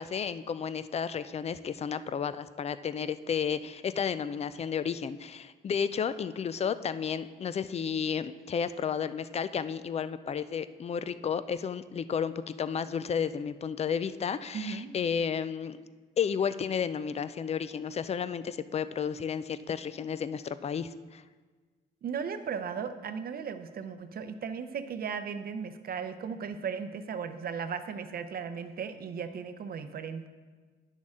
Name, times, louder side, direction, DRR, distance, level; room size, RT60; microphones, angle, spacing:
voice 1, 0.0-15.8 16.2-21.2, left 7 dB, 35° left, 14 dB, 0.4 m, -32 dB
voice 2, 14.5-14.9 22.0-30.3, right 6 dB, 50° right, 10 dB, 0.6 m, -36 dB
10.0 x 6.3 x 3.6 m, 1.4 s
cardioid pair, 90°, 20 cm